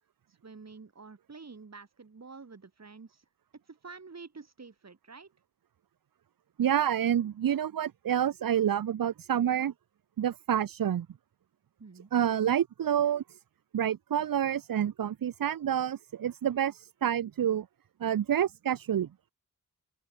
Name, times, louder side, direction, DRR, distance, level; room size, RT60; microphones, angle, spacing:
voice 1, 0.3-3.3 3.7-5.3 11.8-12.1, right 4 dB, 50° right, 7.0 m, -48 dB
voice 2, 6.6-9.7 10.2-11.1 12.1-13.4 13.7-17.7 18.0-19.1, right 9 dB, 75° right, 0.7 m, -28 dB
open air
wide cardioid pair, 125°, 34 cm